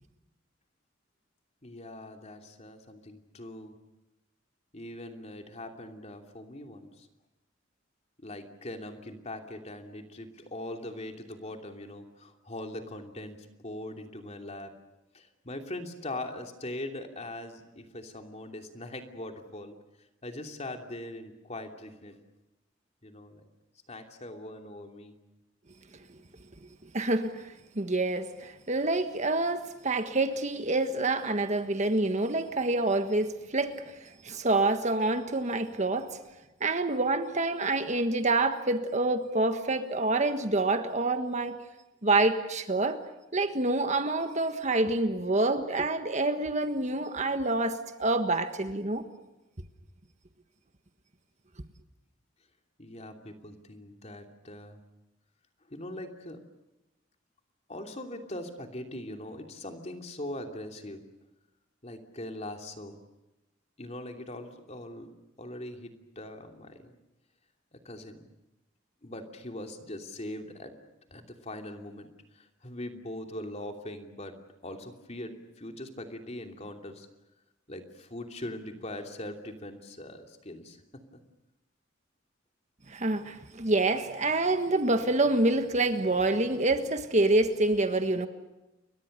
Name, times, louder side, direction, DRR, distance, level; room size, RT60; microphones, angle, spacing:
voice 1, 1.6-3.7 4.7-7.1 8.2-14.7 15.1-19.7 20.2-22.2 23.0-23.4 23.9-25.1 52.8-54.8 55.7-56.4 57.7-61.0 61.8-63.0 63.8-66.9 67.7-68.2 69.0-70.7 71.1-72.1 72.3-74.3 74.6-77.1 77.7-81.2, left 1 dB, 35° left, 2.9 m, -41 dB
voice 2, 26.9-36.2 36.6-41.6 42.0-43.0 43.3-49.0 82.9-88.3, right 2 dB, 35° right, 1.5 m, -27 dB
30.0 x 23.0 x 6.8 m
head